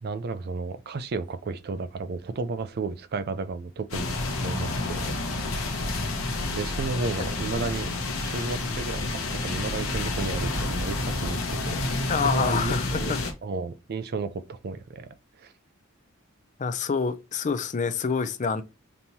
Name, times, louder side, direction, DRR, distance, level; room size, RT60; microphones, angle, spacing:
voice 1, 0.0-5.1 5.5-5.8 6.5-7.9 8.2-11.8 12.3-13.1 13.4-15.1 15.4-15.5, right 3 dB, 50° right, 0.4 m, -33 dB
sound 1, 3.9-13.3, left 2 dB, 90° left, 1.0 m, -29 dB
voice 2, 12.1-13.2 16.6-18.6, left 5 dB, 35° left, 0.4 m, -27 dB
5.3 x 3.0 x 2.7 m
head